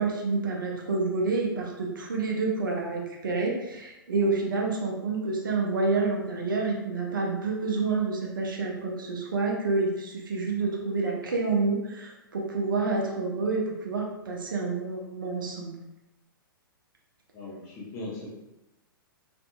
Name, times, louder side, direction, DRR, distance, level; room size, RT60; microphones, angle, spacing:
voice 1, 0.0-15.7, right 3 dB, 65° right, -1 dB, 0.6 m, -28 dB
voice 2, 17.3-18.3, left 2 dB, 25° left, -5 dB, 0.9 m, -39 dB
2.6 x 2.5 x 2.3 m, 0.97 s
figure-of-eight pair, 110°, 12 cm